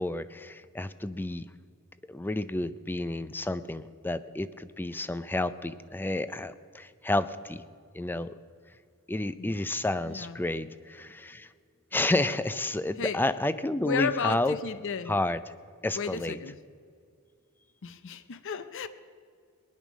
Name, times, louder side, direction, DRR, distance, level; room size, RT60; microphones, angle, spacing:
voice 1, 0.0-1.5 2.1-7.6 7.9-8.4 9.1-11.5 11.9-14.6 15.1-15.4 15.8-16.4, left 2 dB, 10° left, 14 dB, 0.4 m, -30 dB
voice 2, 10.1-10.4 13.0-13.2 13.8-15.1 15.9-16.6 17.8-18.9, left 5 dB, 60° left, 12 dB, 0.6 m, -33 dB
20.0 x 10.5 x 6.2 m, 2.2 s
head